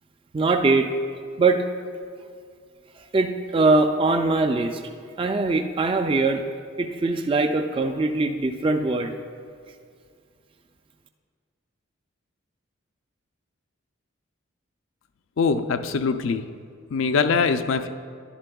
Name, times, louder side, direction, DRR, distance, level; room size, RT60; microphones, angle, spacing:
voice 1, 0.3-0.9 1.4-1.6 3.1-4.8 5.2-6.4 6.8-9.2, right 3 dB, 25° right, 6 dB, 0.3 m, -22 dB
voice 2, 15.4-16.5 16.9-17.9, left 5 dB, 65° left, 9 dB, 0.4 m, -22 dB
11.0 x 11.0 x 2.3 m, 2.2 s
head